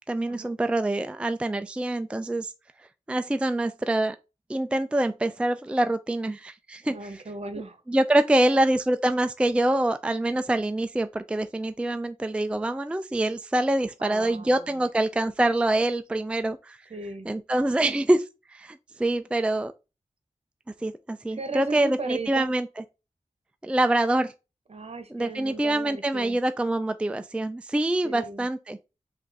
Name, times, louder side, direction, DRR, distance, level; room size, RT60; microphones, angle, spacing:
voice 1, 0.1-2.5 3.1-4.2 4.5-6.9 7.9-16.8 17.3-18.2 18.5-19.7 20.8-22.7 23.6-24.3 25.1-28.8, right 1 dB, 10° right, 0.3 m, -25 dB
voice 2, 6.9-7.8 14.0-14.8 16.9-17.3 21.3-22.5 24.7-26.4 28.0-28.5, right 3 dB, 50° right, 0.9 m, -37 dB
5.2 x 2.5 x 3.9 m
wide cardioid pair, 90°, 13 cm